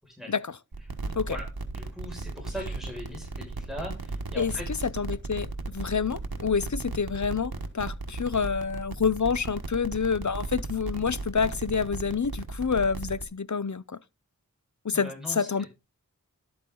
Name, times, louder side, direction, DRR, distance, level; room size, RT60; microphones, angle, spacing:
voice 1, 0.0-0.3 1.3-4.9 14.9-15.5, equal, ahead, 6.1 m, -40 dB
sound 1, 0.7-13.2, right 3 dB, 90° right, 1.4 m, -36 dB
voice 2, 4.8-14.0 14.8-15.6, left 6 dB, 55° left, 0.7 m, -28 dB
12.0 x 8.5 x 3.9 m
wide cardioid pair, 50°, 35 cm